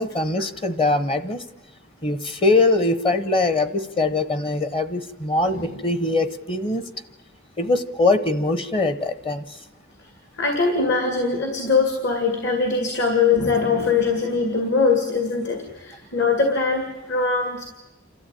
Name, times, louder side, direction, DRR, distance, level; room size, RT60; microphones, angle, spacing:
voice 1, 0.0-1.4 2.0-6.8 7.6-9.4, left 2 dB, 25° left, 13 dB, 0.9 m, -22 dB
voice 2, 5.5-5.8 10.4-17.7, left 4 dB, 60° left, 5 dB, 2.3 m, -22 dB
28.0 x 13.0 x 9.1 m, 1.1 s
head